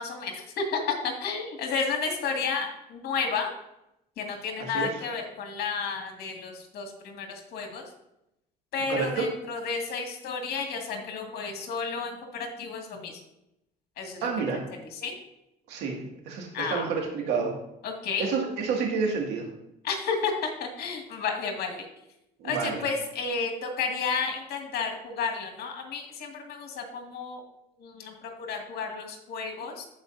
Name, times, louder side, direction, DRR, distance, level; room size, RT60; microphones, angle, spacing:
voice 1, 0.0-3.5 4.2-7.9 8.7-13.2 14.0-14.3 15.0-15.1 16.5-16.8 17.8-18.3 19.8-21.9 22.4-27.4 27.8-29.9, left 5 dB, 70° left, 2 dB, 2.0 m, -32 dB
voice 2, 4.6-5.1 8.9-9.3 14.2-14.6 15.7-17.5 18.2-19.5 22.4-22.8, right 5 dB, 85° right, 0 dB, 2.1 m, -29 dB
15.0 x 5.1 x 2.6 m, 0.85 s
cardioid pair, 110°, 17 cm